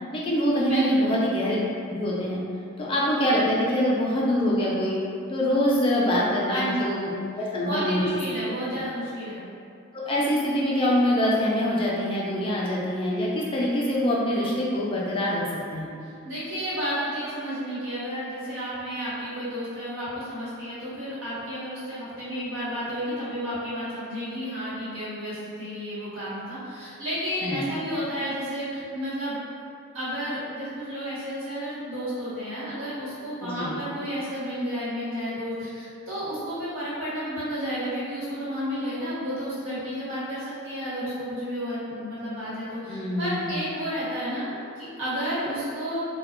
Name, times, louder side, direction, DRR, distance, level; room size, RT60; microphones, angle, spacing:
voice 1, 0.1-1.6 1.9-2.4 2.8-5.0 5.3-7.1 7.4-8.1 9.9-15.4 15.7-15.9 27.4-27.8 33.4-33.8 42.9-43.6, equal, 25° left, -5 dB, 0.3 m, -24 dB
voice 2, 0.6-1.1 6.5-7.0 7.6-9.4 16.0-29.3 29.9-44.5 44.7-46.0, equal, 65° right, -11 dB, 1.2 m, -31 dB
2.2 x 2.2 x 3.5 m, 2.5 s
head